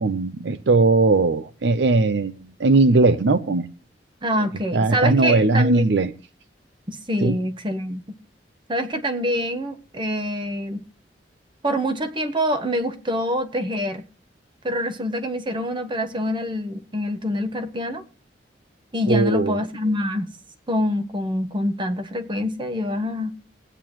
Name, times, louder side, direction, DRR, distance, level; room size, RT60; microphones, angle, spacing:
voice 1, 0.0-3.6 4.7-6.1 7.2-7.4 19.1-19.6, right 3 dB, 70° right, 0.6 m, -19 dB
voice 2, 4.2-5.8 6.9-8.0 8.7-10.8 11.6-14.0 14.6-18.0 18.9-20.3 20.7-23.3, equal, 30° right, 1.1 m, -25 dB
19.0 x 8.9 x 3.0 m
head